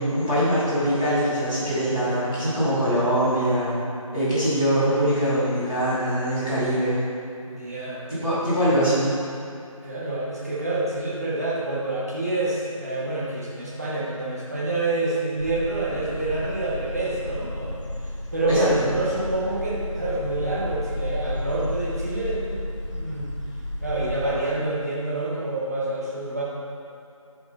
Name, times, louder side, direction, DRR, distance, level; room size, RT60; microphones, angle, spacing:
voice 1, 0.0-3.8 4.1-7.0 8.1-9.1 18.5-18.7, equal, 5° left, -20 dB, 1.7 m, -23 dB
voice 2, 1.8-2.2 7.4-8.1 9.8-17.8 18.3-22.6 22.9-23.3 23.8-26.4, right 2 dB, 30° right, -7 dB, 1.6 m, -27 dB
sound 1, 15.4-24.4, left 1 dB, 55° left, 1.6 m, -32 dB
9.7 x 5.5 x 4.6 m, 2.6 s
figure-of-eight pair, 170°, 18 cm